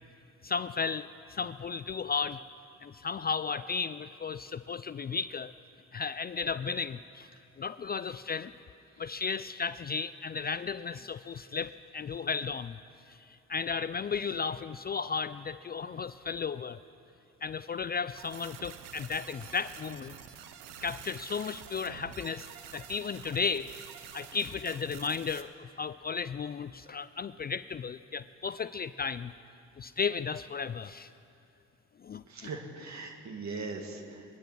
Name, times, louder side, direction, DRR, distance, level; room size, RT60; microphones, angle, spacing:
voice 1, 0.4-2.4 2.8-5.5 5.9-7.3 7.6-8.5 9.0-12.8 13.1-16.8 17.4-20.1 20.8-23.7 24.1-29.3 29.8-31.1 32.0-32.5, left 5 dB, 30° left, 14 dB, 0.4 m, -34 dB
sound 1, 18.1-25.4, right 10 dB, 85° right, 0.8 m, -48 dB
voice 2, 32.2-34.2, right 3 dB, 50° right, 3 dB, 2.4 m, -40 dB
22.5 x 10.5 x 6.1 m, 2.7 s
hypercardioid pair, 50°, 34 cm